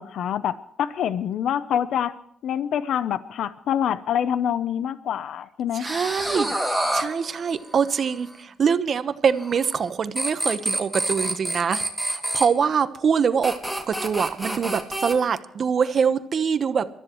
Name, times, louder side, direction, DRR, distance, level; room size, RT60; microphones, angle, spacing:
voice 1, 0.0-2.1 2.4-5.9, left 9 dB, 75° left, 14 dB, 0.7 m, -26 dB
voice 2, 5.7-6.5 6.9-13.6 13.9-16.9, right 6 dB, 50° right, 12 dB, 1.0 m, -24 dB
sound 1, 5.8-8.2 9.4-9.9 10.2-12.5 13.4-15.1, right 1 dB, ahead, 2.4 m, -27 dB
24.0 x 13.5 x 3.1 m, 0.69 s
cardioid pair, 90°, 0 cm